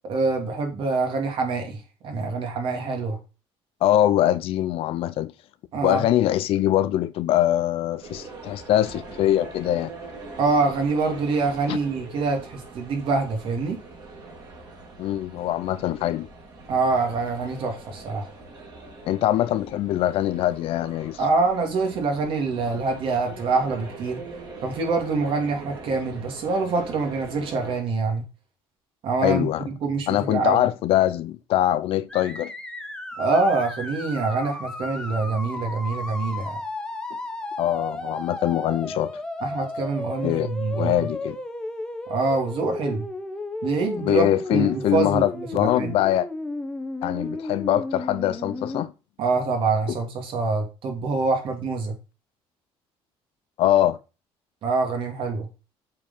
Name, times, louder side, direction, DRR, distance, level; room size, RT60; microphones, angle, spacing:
voice 1, 0.0-3.2 5.7-6.0 10.4-13.8 16.7-18.2 21.2-24.2 24.6-28.2 29.0-30.6 33.2-36.6 39.4-41.0 42.1-43.1 43.6-45.9 49.2-51.9 54.6-55.5, right 4 dB, 60° right, 2.6 m, -25 dB
voice 2, 3.8-5.3 5.8-9.9 11.7-11.8 15.0-16.3 19.1-21.2 29.2-29.7 30.1-32.5 37.6-39.2 40.2-41.4 44.0-46.3 47.0-48.9 49.9-50.0 53.6-54.0, left 12 dB, 70° left, 0.7 m, -23 dB
sound 1, 8.0-27.8, right 3 dB, 40° right, 3.3 m, -42 dB
sound 2, 32.1-48.8, left 2 dB, 5° left, 1.1 m, -34 dB
7.4 x 4.7 x 5.5 m
cardioid pair, 125°, 10 cm